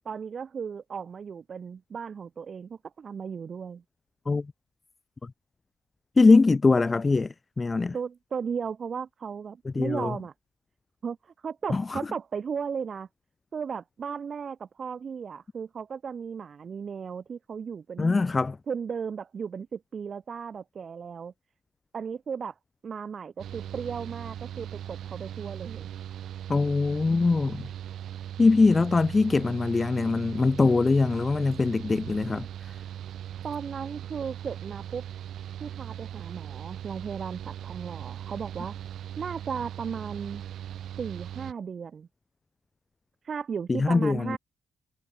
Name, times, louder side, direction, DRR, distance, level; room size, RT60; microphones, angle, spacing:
voice 1, 0.1-3.8 7.9-10.3 11.0-13.1 13.5-18.2 18.7-21.3 21.9-22.5 22.8-25.9 33.4-35.0 35.6-38.7 39.2-40.4 41.0-42.1 43.2-44.4, right 6 dB, 45° right, 3.8 m, -35 dB
voice 2, 6.2-7.9 9.8-10.1 11.7-12.0 18.0-18.6 26.5-27.7 28.4-32.5 43.7-44.4, left 3 dB, 25° left, 2.0 m, -22 dB
Mechanical fan, 23.4-41.5, right 11 dB, 70° right, 4.6 m, -39 dB
cardioid pair, 90°, 0 cm